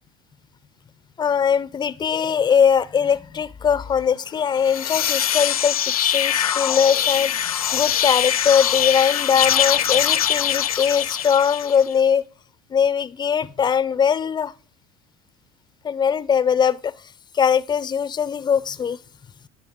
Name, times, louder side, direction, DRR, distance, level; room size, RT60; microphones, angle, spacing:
voice 1, 1.2-7.3 7.7-12.2 12.7-14.5 15.8-16.9 17.3-19.0, left 7 dB, 25° left, 0.6 m, -21 dB
sound 1, 4.5-11.9, left 10 dB, 90° left, 0.4 m, -22 dB
10.5 x 7.2 x 3.6 m
hypercardioid pair, 70°, 18 cm